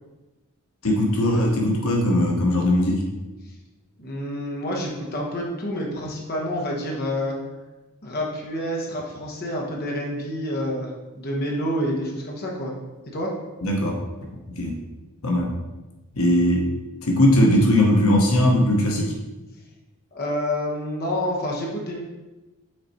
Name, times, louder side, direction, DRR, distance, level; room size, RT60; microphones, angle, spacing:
voice 1, 0.8-3.0 13.6-14.0 14.5-14.7 15.2-15.5 16.1-16.7 17.0-19.1, left 1 dB, 80° left, 0 dB, 1.1 m, -19 dB
voice 2, 4.0-7.4 8.0-12.7 13.1-13.3 20.1-22.0, equal, 45° left, -1 dB, 1.2 m, -28 dB
6.6 x 4.1 x 4.2 m, 1.1 s
head